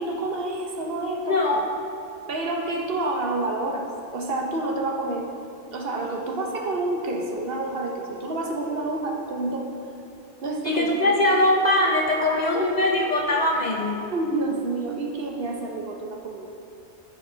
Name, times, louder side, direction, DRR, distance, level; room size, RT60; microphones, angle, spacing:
voice 1, 0.0-1.4 2.3-5.3 5.7-9.7 10.4-11.1 12.3-12.7 14.1-16.5, right 2 dB, 55° right, 1 dB, 1.0 m, -28 dB
voice 2, 1.3-1.7 10.6-14.1, left 1 dB, 45° left, -1 dB, 0.7 m, -22 dB
sound 1, 5.9-9.7 11.0-14.6, right 1 dB, 30° right, 2.0 m, -45 dB
14.0 x 4.7 x 3.9 m, 2.6 s
omnidirectional pair, 1.2 m